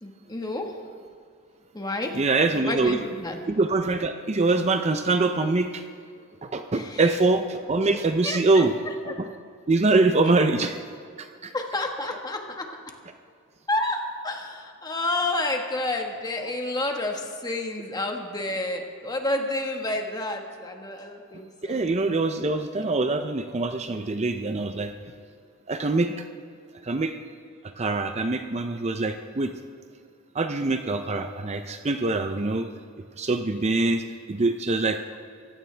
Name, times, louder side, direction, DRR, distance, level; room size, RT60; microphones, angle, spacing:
voice 1, 0.0-0.7 1.7-2.2 2.6-3.4 6.7-7.0 8.2-8.6 11.5-12.7 13.7-21.9 22.5-22.9, left 2 dB, 20° left, 3 dB, 1.4 m, -30 dB
voice 2, 2.1-3.0 3.5-5.8 6.4-8.7 9.0-9.3 9.7-10.8 11.2-11.5 21.6-24.9 25.7-26.2 26.8-27.1 27.8-29.5 30.3-32.7 33.2-35.0, right 3 dB, 30° right, 7 dB, 0.5 m, -24 dB
24.0 x 16.0 x 3.4 m, 2.2 s
head